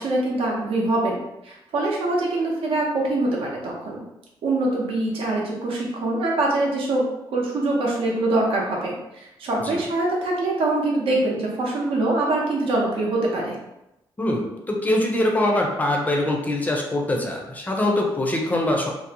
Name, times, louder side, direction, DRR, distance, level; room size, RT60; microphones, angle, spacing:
voice 1, 0.0-4.0 4.4-13.6, right 2 dB, 85° right, -2 dB, 0.7 m, -24 dB
voice 2, 14.2-18.9, left 1 dB, 15° left, 0 dB, 0.4 m, -23 dB
2.6 x 2.0 x 2.7 m, 0.91 s
cardioid pair, 135°, 9 cm